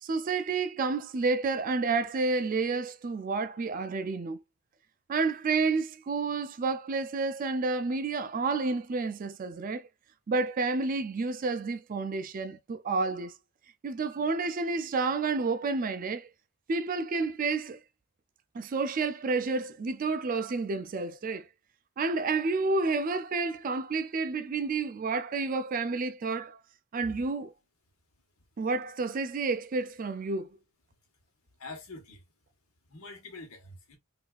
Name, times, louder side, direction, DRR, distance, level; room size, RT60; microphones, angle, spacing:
voice 1, 0.0-4.4 5.1-9.9 10.3-13.3 13.8-16.3 16.7-17.8 18.5-21.5 22.0-26.6 26.9-27.5 28.6-30.5, right 4 dB, 40° right, 0.3 m, -30 dB
voice 2, 31.6-32.2 32.9-34.0, left 3 dB, 75° left, 1.4 m, -45 dB
3.9 x 2.7 x 2.4 m
head